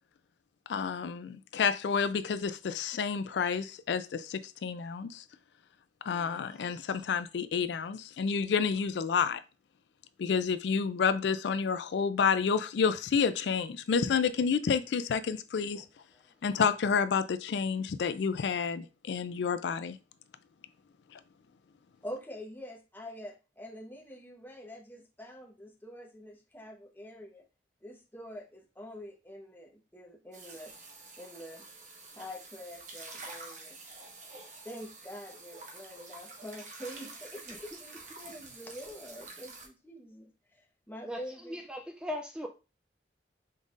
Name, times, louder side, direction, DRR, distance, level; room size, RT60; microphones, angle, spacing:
voice 1, 0.7-5.2 6.1-9.4 10.2-15.8 16.4-20.0, left 6 dB, 75° left, 0.4 m, -29 dB
voice 2, 22.0-27.4 27.8-30.7 31.2-31.7 32.1-33.8 34.6-41.6, equal, 10° left, 0.8 m, -46 dB
sound 1, 30.3-39.7, right 3 dB, 45° right, 1.0 m, -48 dB
voice 3, 41.5-42.5, left 1 dB, 5° right, 0.4 m, -38 dB
5.3 x 3.9 x 2.4 m
head